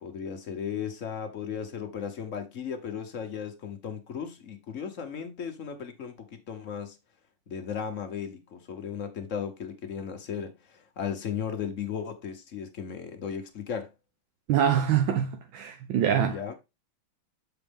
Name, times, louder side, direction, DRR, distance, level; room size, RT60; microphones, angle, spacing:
voice 1, 0.0-7.0 7.5-13.9 16.2-16.5, left 7 dB, 50° left, 1.0 m, -36 dB
voice 2, 14.5-16.4, right 9 dB, 80° right, 1.5 m, -24 dB
7.0 x 4.6 x 3.5 m
omnidirectional pair, 2.1 m